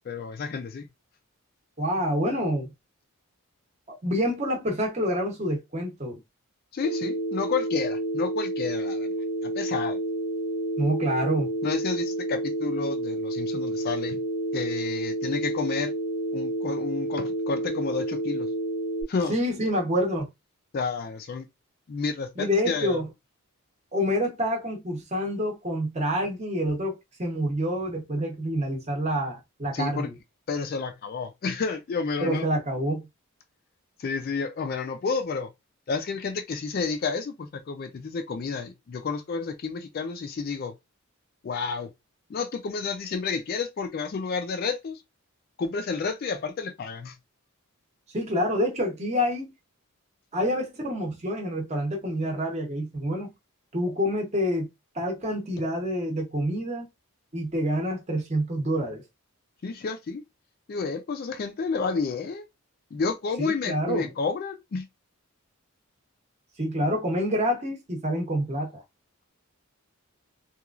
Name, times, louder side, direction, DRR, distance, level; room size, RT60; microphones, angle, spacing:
voice 1, 0.1-0.9 6.7-9.1 9.4-10.0 11.6-14.2 14.5-15.9 16.3-18.5 19.1-19.3 20.7-21.5 21.9-23.0 29.7-30.1 30.5-32.4 34.0-35.5 35.9-40.7 41.4-41.9 42.3-45.0 45.6-47.2 59.6-60.2 60.7-62.5 62.9-64.9, left 4 dB, 45° left, 0.3 m, -30 dB
voice 2, 1.8-2.7 3.9-6.2 10.8-11.5 19.3-20.3 22.4-23.1 23.9-30.2 32.2-33.1 48.1-49.5 50.3-53.3 53.7-54.7 54.9-56.9 57.3-59.0 63.4-64.1 66.6-68.8, equal, 30° right, 0.8 m, -27 dB
Telephone, 6.8-19.0, right 1 dB, 60° right, 0.8 m, -30 dB
3.0 x 2.3 x 2.3 m
head